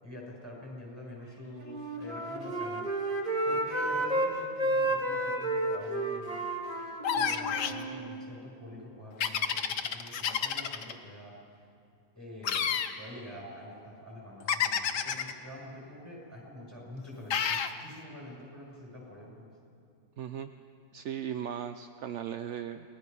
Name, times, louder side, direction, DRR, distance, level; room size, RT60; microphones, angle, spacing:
voice 1, 0.0-2.9 3.5-6.4 7.1-11.3 12.1-19.5, left 1 dB, 10° right, -3 dB, 6.8 m, -46 dB
Wind instrument woodwind instrument, 1.6-4.3 4.6-8.2, right 1 dB, 25° right, 2.0 m, -31 dB
sound 1, 7.0-7.8 9.2-10.9 12.4-12.9 14.5-15.3 17.3-17.7, left 7 dB, 85° left, 1.6 m, -29 dB
voice 2, 20.2-20.5 20.9-22.9, right 9 dB, 60° right, 9 dB, 0.8 m, -37 dB
29.0 x 20.0 x 5.5 m, 2.5 s
omnidirectional pair, 1.7 m